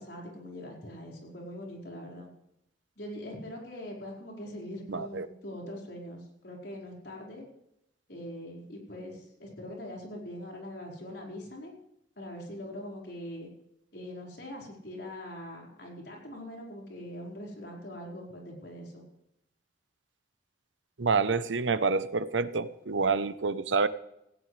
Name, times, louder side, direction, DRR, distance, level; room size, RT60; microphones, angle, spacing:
voice 1, 0.0-2.3 3.0-7.4 8.1-11.7 12.2-13.5 13.9-19.0, left 1 dB, 65° left, -1 dB, 4.9 m, -42 dB
voice 2, 4.9-5.3 21.0-23.9, right 4 dB, 80° right, 14 dB, 0.8 m, -27 dB
17.5 x 16.5 x 3.3 m, 0.84 s
head